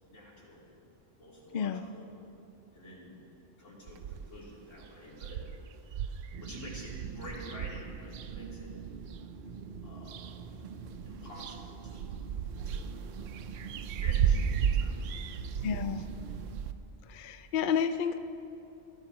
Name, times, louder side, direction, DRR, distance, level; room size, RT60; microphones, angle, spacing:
voice 1, 0.1-0.6 1.2-2.1 2.7-3.2 3.6-8.7 9.8-10.4 11.0-12.1 12.6-12.9 13.8-15.5, left 1 dB, 85° left, -6 dB, 3.8 m, -49 dB
sound 1, 3.9-4.5 4.8-4.9 5.1-9.2 9.7-10.6 10.9-16.7, right 8 dB, 85° right, 1.0 m, -34 dB
sound 2, 6.3-16.6, right 5 dB, 50° right, 0.8 m, -45 dB
voice 2, 15.6-16.1 17.1-18.2, left 7 dB, 55° left, 10 dB, 0.6 m, -30 dB
22.5 x 15.0 x 3.1 m, 2.7 s
omnidirectional pair, 1.3 m